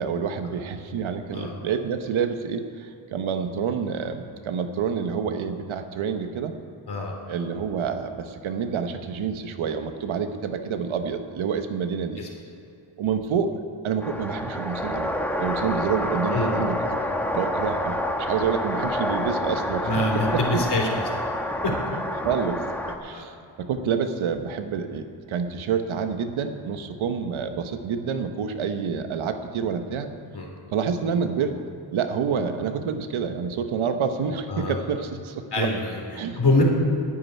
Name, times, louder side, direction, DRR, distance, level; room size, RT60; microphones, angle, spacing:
voice 1, 0.0-6.5 7.3-12.2 13.0-13.5 13.8-15.1 15.4-17.0 17.3-20.6 22.2-22.6 23.0-30.1 30.7-31.6 31.9-35.7 36.1-36.4, right 6 dB, 85° right, 7 dB, 1.2 m, -28 dB
sound 1, 14.0-23.0, left 1 dB, 5° left, 1.4 m, -28 dB
voice 2, 19.5-21.0 21.6-21.7 23.1-23.2 30.3-30.5 34.5-34.8 35.5-36.6, left 2 dB, 55° left, 0 dB, 3.6 m, -25 dB
10.0 x 7.8 x 9.5 m, 2.7 s
cardioid pair, 65°, 47 cm